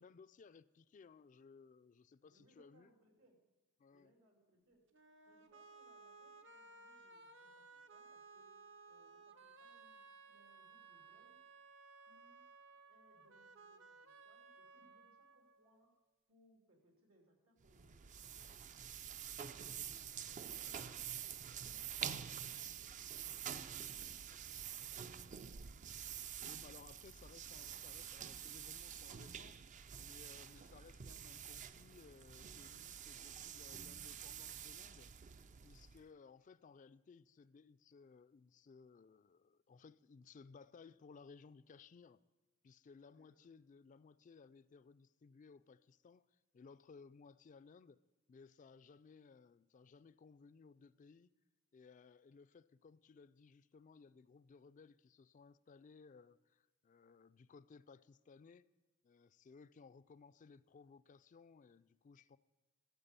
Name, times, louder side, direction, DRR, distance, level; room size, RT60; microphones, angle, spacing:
voice 1, 0.0-2.9 3.8-4.1 26.4-29.6 30.0-35.1 35.6-42.2 42.6-48.0 48.3-51.3 51.7-58.6 59.0-62.4, left 5 dB, 40° left, 0.3 m, -61 dB
voice 2, 2.2-3.4 3.9-4.9 5.2-8.5 8.9-11.4 12.0-12.5 12.9-15.9 16.3-18.7 19.4-21.3 21.6-23.9 24.3-25.3 43.1-43.4, right 1 dB, 90° right, 3.0 m, -73 dB
sound 1, 4.9-15.9, right 4 dB, 65° right, 0.8 m, -59 dB
sound 2, 17.6-36.1, right 8 dB, 40° right, 0.4 m, -48 dB
13.0 x 7.9 x 6.8 m
head